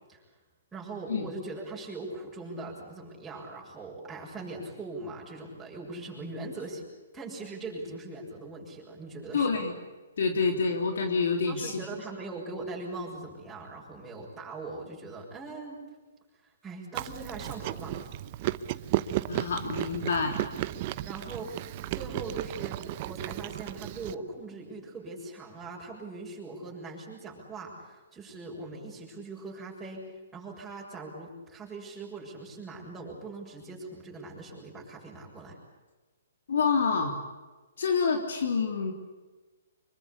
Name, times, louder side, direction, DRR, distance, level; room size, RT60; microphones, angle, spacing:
voice 1, 0.7-6.8 7.1-9.6 11.4-15.8 16.4-18.0 21.1-21.5 21.9-30.0 30.3-35.6, right 3 dB, 10° right, -5 dB, 7.2 m, -41 dB
voice 2, 9.3-9.8 10.2-12.0 19.3-20.4 36.5-37.2 37.8-38.9, left 5 dB, 70° left, 4 dB, 3.6 m, -27 dB
Chewing mastication, 16.9-24.1, right 15 dB, 40° right, 1.0 m, -34 dB
25.0 x 22.5 x 8.5 m, 1.2 s
hypercardioid pair, 145°, 0 cm